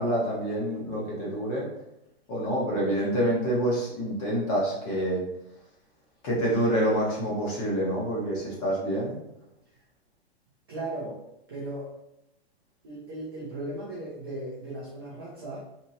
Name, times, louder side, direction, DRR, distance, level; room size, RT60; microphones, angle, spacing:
voice 1, 0.0-1.7 2.3-5.2 6.2-9.1, equal, 30° left, -4 dB, 1.0 m, -27 dB
voice 2, 10.7-11.9 12.8-15.6, right 2 dB, 25° right, -6 dB, 0.4 m, -37 dB
2.9 x 2.8 x 2.6 m, 0.84 s
hypercardioid pair, 170°, 32 cm